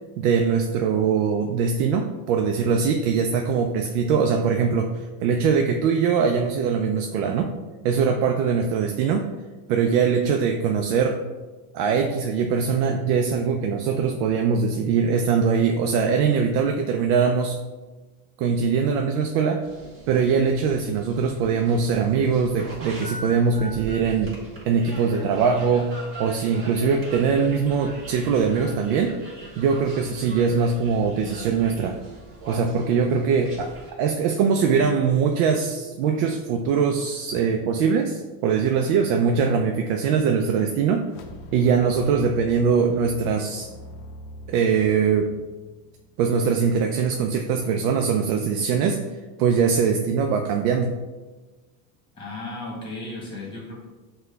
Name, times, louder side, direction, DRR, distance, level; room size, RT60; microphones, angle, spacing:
voice 1, 0.2-7.5 7.8-9.3 9.7-11.2 11.7-17.6 18.4-19.7 20.1-25.9 26.2-29.2 29.6-32.0 32.5-33.7 34.0-41.1 41.5-43.7 44.5-45.3 46.2-49.0 49.4-50.9, right 6 dB, 75° right, 4 dB, 0.5 m, -22 dB
sound 1, 19.6-33.9, right 2 dB, 25° right, 1.4 m, -41 dB
sound 2, 41.0-46.4, left 1 dB, 45° left, 0.5 m, -43 dB
voice 2, 52.1-53.8, left 2 dB, 10° left, -4 dB, 1.3 m, -35 dB
5.9 x 2.3 x 3.2 m, 1.2 s
supercardioid pair, 140°, 49 cm